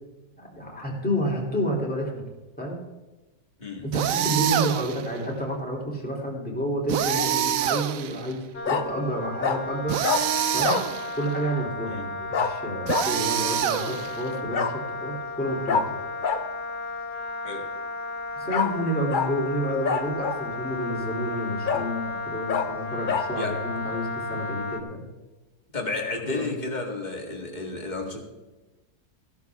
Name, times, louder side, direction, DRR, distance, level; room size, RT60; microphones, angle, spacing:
voice 1, 0.4-2.2 2.6-2.8 3.8-10.0 10.5-10.8 11.2-15.9 18.3-25.1 26.3-26.5, equal, 5° left, -3 dB, 3.0 m, -30 dB
sound 1, 3.9-5.1 6.9-8.3 9.9-11.2 12.9-14.3, right 10 dB, 65° right, 0.9 m, -26 dB
Bark, 7.0-7.3 8.7-8.9 9.4-9.6 10.0-10.2 10.6-10.9 12.3-12.5 12.9-13.1 14.5-14.7 15.7-15.8 16.2-16.4 18.5-18.7 19.1-19.3 19.8-20.5 21.0-21.1 21.7-21.9 22.5-22.7 23.1-23.3, left 6 dB, 50° left, 0.6 m, -25 dB
Wind instrument woodwind instrument, 8.5-24.8, left 3 dB, 80° left, 1.7 m, -34 dB
voice 2, 25.7-28.2, left 3 dB, 30° left, 1 dB, 1.9 m, -32 dB
15.5 x 12.0 x 3.6 m, 1.1 s
omnidirectional pair, 1.7 m